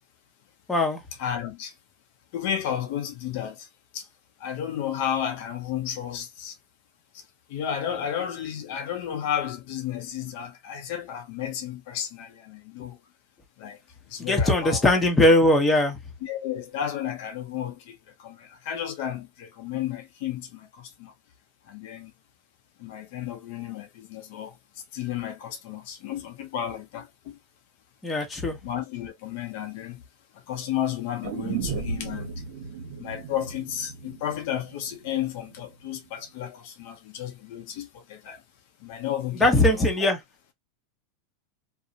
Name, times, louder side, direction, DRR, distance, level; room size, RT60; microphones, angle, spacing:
voice 1, 0.7-1.0 14.2-16.0 28.0-28.6 39.4-40.2, left 1 dB, 10° left, 0.9 m, -20 dB
voice 2, 1.2-1.7 2.3-3.7 3.9-4.1 4.4-6.6 7.1-7.2 7.5-13.0 13.6-13.8 14.1-15.0 16.2-21.1 21.7-22.1 22.8-24.5 24.9-27.4 28.6-30.0 30.5-32.3 33.0-38.4 38.8-40.1, left 10 dB, 65° left, 0.6 m, -33 dB
sound 1, 31.2-35.3 35.6-35.7, right 5 dB, 60° right, 0.8 m, -35 dB
2.7 x 2.1 x 2.5 m
supercardioid pair, 120°, 0 cm